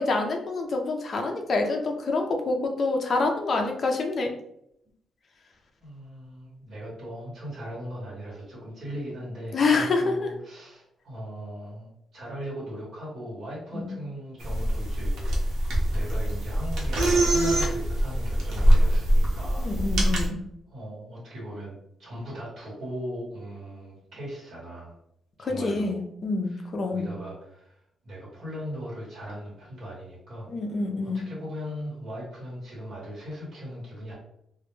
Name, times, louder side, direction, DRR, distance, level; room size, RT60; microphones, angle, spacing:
voice 1, 0.0-4.3 9.5-10.3 13.7-13.9 19.6-20.4 25.4-27.1 30.5-31.3, left 3 dB, 40° left, 3 dB, 0.4 m, -27 dB
voice 2, 5.8-15.6 15.9-19.7 20.7-24.9 25.4-26.0 26.4-27.8 28.0-30.5 31.0-34.1, equal, 50° right, -7 dB, 1.0 m, -38 dB
sound 1, 14.4-20.3, right 1 dB, 80° right, 0.7 m, -23 dB
2.1 x 2.0 x 3.0 m, 0.75 s
wide cardioid pair, 165°, 0 cm